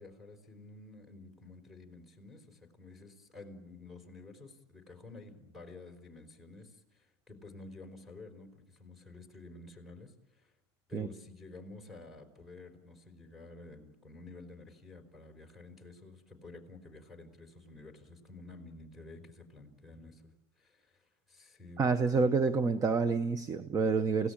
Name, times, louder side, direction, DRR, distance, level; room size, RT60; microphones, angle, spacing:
voice 1, 0.0-10.5 10.9-21.9, left 2 dB, ahead, 3 dB, 4.9 m, -51 dB
voice 2, 21.8-24.3, right 4 dB, 25° right, 11 dB, 1.0 m, -28 dB
28.5 x 17.5 x 8.8 m, 0.99 s
supercardioid pair, 130°, 14 cm